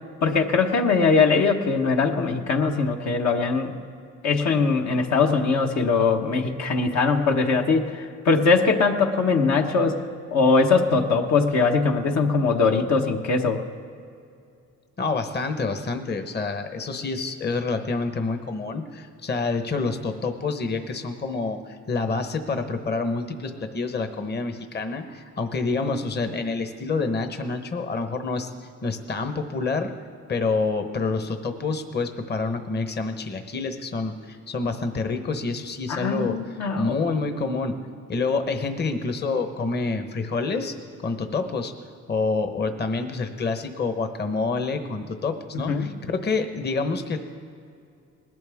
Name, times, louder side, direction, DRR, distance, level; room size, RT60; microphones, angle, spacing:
voice 1, 0.2-3.7 4.2-10.0 10.3-13.6 35.9-36.9 45.7-45.9, left 4 dB, 65° left, 3 dB, 1.2 m, -21 dB
voice 2, 15.0-29.9 30.3-36.4 36.8-37.7 38.1-40.7 41.0-41.7 42.1-47.2, left 3 dB, 35° left, 7 dB, 1.0 m, -27 dB
20.0 x 12.0 x 3.5 m, 2.4 s
cardioid pair, 90°, 30 cm